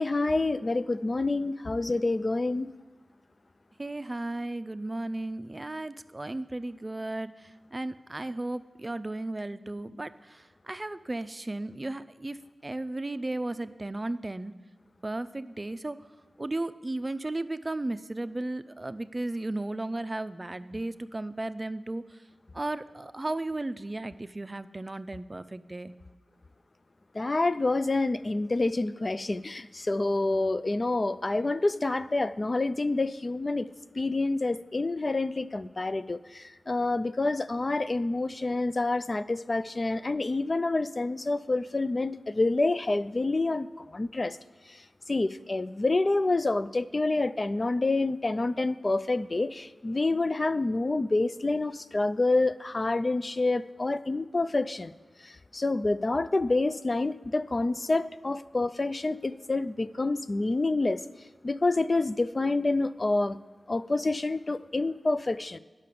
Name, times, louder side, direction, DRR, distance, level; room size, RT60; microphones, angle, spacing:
voice 1, 0.0-2.7 27.1-33.7 34.0-44.4 45.1-54.9 55.2-61.0 61.4-63.4 63.7-65.6, left 2 dB, 45° left, 13 dB, 0.3 m, -27 dB
voice 2, 3.8-14.5 15.0-16.0 16.4-22.2 22.5-25.9, right 2 dB, 35° right, 13 dB, 0.4 m, -35 dB
9.9 x 5.6 x 6.8 m, 1.3 s
cardioid pair, 45°, 0 cm